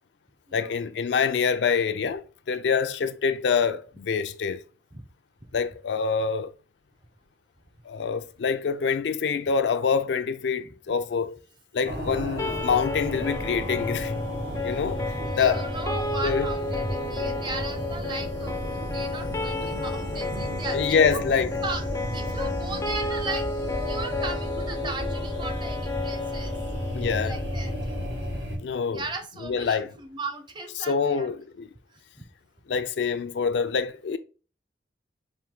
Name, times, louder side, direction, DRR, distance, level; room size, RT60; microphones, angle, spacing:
voice 1, 0.5-4.6 5.5-6.5 7.9-11.4 11.7-14.2 14.6-15.0 15.3-15.7 16.2-16.5 19.6-19.7 20.7-21.5 26.9-27.4 28.6-29.0 29.4-29.9 30.9-31.7 32.7-34.2, left 6 dB, 80° left, 0.4 m, -25 dB
sound 1, 11.8-28.6, equal, 90° right, 1.5 m, -33 dB
sound 2, 12.4-28.4, left 3 dB, 20° left, 0.4 m, -33 dB
voice 2, 15.3-18.6 18.9-21.2 21.6-21.8 22.1-26.5 27.2-27.9 28.9-31.3 31.9-32.0, right 3 dB, 25° right, 0.6 m, -37 dB
4.5 x 2.5 x 3.6 m
head